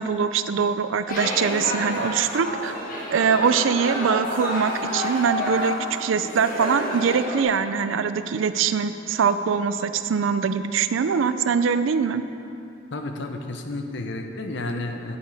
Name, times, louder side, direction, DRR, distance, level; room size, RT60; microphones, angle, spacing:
voice 1, 0.0-2.7 3.1-12.2, right 6 dB, 80° right, 11 dB, 0.4 m, -23 dB
sound 1, 1.1-7.4, left 1 dB, 45° left, 1.5 m, -29 dB
voice 2, 12.9-15.2, left 2 dB, 65° left, 5 dB, 0.7 m, -31 dB
9.0 x 7.3 x 4.8 m, 2.7 s
head